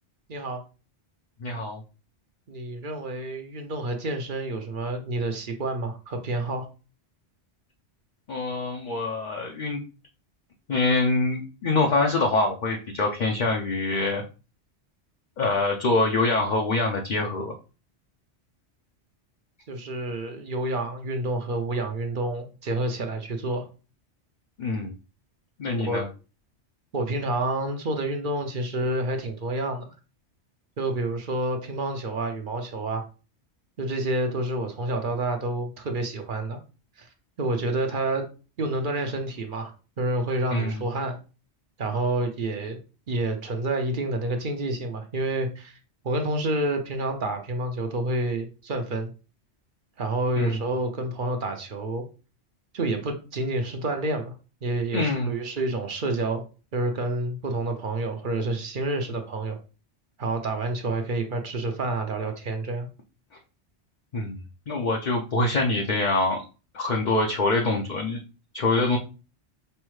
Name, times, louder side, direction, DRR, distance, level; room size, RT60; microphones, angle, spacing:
voice 1, 0.3-0.6 2.5-6.7 19.7-23.7 25.7-26.0 26.9-29.9 30.8-33.0 33.8-36.6 37.0-37.1 37.4-38.3 38.6-41.2 41.8-42.8 43.1-45.8 46.0-49.1 50.0-52.0 52.7-54.3 54.6-56.4 56.7-59.6 60.2-62.9, right 2 dB, 55° right, 5 dB, 0.8 m, -28 dB
voice 2, 1.4-1.8 8.3-9.8 10.7-14.2 15.4-17.5 24.6-24.9 25.6-26.1 40.5-40.8 50.4-50.6 54.9-55.3 64.1-64.4 64.7-66.4 66.7-68.2 68.5-69.0, left 2 dB, 50° left, 1 dB, 0.6 m, -25 dB
5.5 x 2.1 x 3.1 m, 0.33 s
omnidirectional pair, 1.2 m